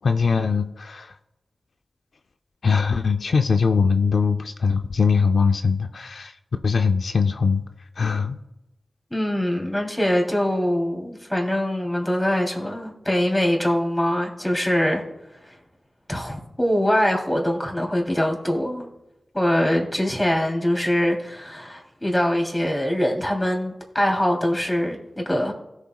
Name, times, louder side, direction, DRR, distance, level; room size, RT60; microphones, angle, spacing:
voice 1, 0.0-1.2 2.6-6.3 6.6-7.6 8.0-8.4, left 5 dB, 80° left, 6 dB, 0.5 m, -21 dB
voice 2, 9.1-15.0 15.4-15.5 16.1-18.9 19.3-25.5, equal, 15° left, 0 dB, 3.0 m, -23 dB
17.0 x 7.1 x 2.3 m, 0.94 s
cardioid pair, 45°, 0 cm